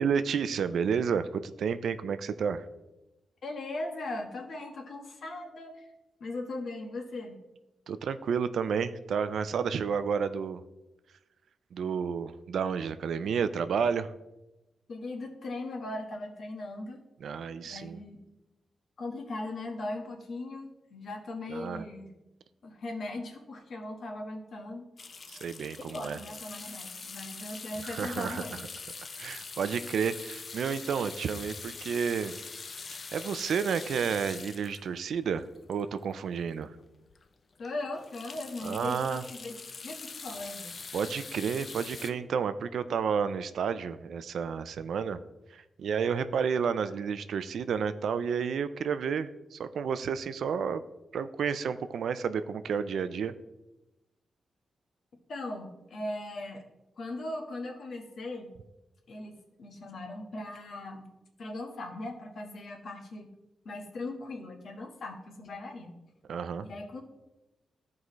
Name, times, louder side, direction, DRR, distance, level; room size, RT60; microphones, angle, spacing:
voice 1, 0.0-2.7 7.9-10.6 11.7-14.1 17.2-18.0 21.5-21.8 25.3-26.2 27.8-28.4 29.2-32.4 33.1-36.8 38.6-39.2 40.9-45.2 45.5-50.8 51.1-53.3 66.3-66.7, right 6 dB, 80° right, 12 dB, 0.4 m, -31 dB
voice 2, 3.4-5.9 6.2-7.4 14.9-17.0 17.6-18.2 19.0-22.1 22.6-24.8 25.9-28.6 37.6-39.6 39.8-40.7 55.3-56.7 57.0-58.5 59.1-61.1 61.4-63.3 63.6-65.9 66.6-67.0, left 2 dB, 65° left, 3 dB, 1.4 m, -39 dB
sound 1, 25.0-36.3 36.8-36.9 37.1-37.3 37.6-42.1, left 4 dB, 45° left, 0.5 m, -43 dB
14.0 x 4.8 x 3.1 m, 1.0 s
wide cardioid pair, 130°, 0 cm